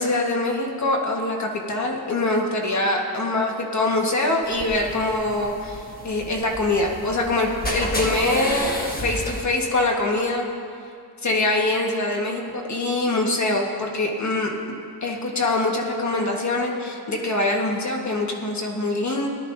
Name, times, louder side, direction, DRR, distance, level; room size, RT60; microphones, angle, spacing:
voice 1, 0.0-10.5 11.2-14.5 15.0-19.3, left 2 dB, 45° left, 0 dB, 1.4 m, -24 dB
sound 1, 4.4-9.4, left 1 dB, 25° left, 1.3 m, -31 dB
19.0 x 12.0 x 2.6 m, 2.3 s
wide cardioid pair, 165°, 39 cm